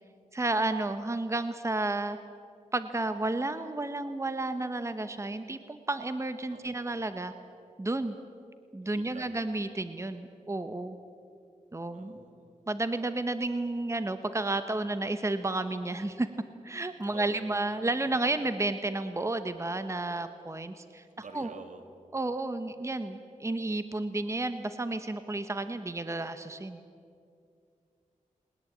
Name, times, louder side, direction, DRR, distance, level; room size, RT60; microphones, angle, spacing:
voice 1, 0.3-2.2 2.7-7.3 7.8-8.2 8.7-11.0 11.7-12.1 12.7-16.3 16.6-21.0 21.3-21.5 22.1-26.8, right 2 dB, 20° right, 10 dB, 1.1 m, -32 dB
voice 2, 8.9-9.3 11.9-12.5 17.0-17.4 21.2-21.8, right 4 dB, 70° right, 7 dB, 2.2 m, -47 dB
20.5 x 20.5 x 8.7 m, 2.4 s
wide cardioid pair, 80°, 13 cm